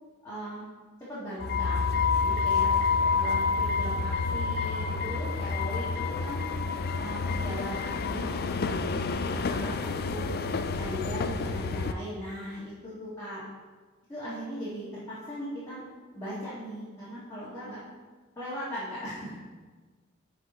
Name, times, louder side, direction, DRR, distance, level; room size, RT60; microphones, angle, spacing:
voice 1, 0.2-0.7 1.1-1.8 2.2-2.7 3.1-5.9 6.2-6.4 7.0-10.4 10.8-13.4 14.1-15.8 16.1-17.8 18.4-19.3, equal, 15° left, -12 dB, 2.2 m, -38 dB
sound 1, 1.4-11.9, left 4 dB, 50° left, 0.4 m, -28 dB
12.0 x 5.1 x 3.1 m, 1.4 s
head